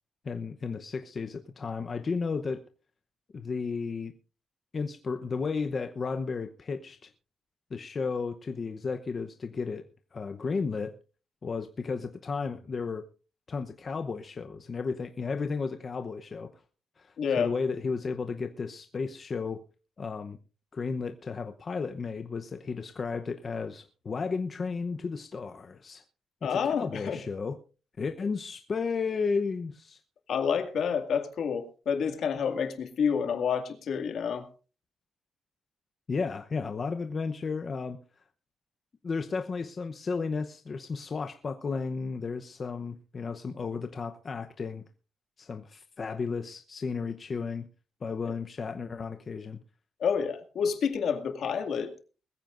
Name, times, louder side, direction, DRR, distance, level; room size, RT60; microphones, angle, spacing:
voice 1, 0.2-2.6 3.3-4.1 4.7-7.1 7.7-9.8 10.1-11.0 11.4-13.1 13.5-16.6 17.0-19.6 20.0-20.4 20.7-26.0 26.4-27.6 28.0-30.0 36.1-38.0 39.0-44.8 45.4-47.7 48.0-49.6, left 4 dB, 35° left, 0.8 m, -33 dB
voice 2, 17.2-17.5 26.4-27.2 30.3-34.5 50.0-51.9, left 6 dB, 60° left, 2.1 m, -29 dB
21.0 x 15.0 x 2.5 m
cardioid pair, 150°, 0 cm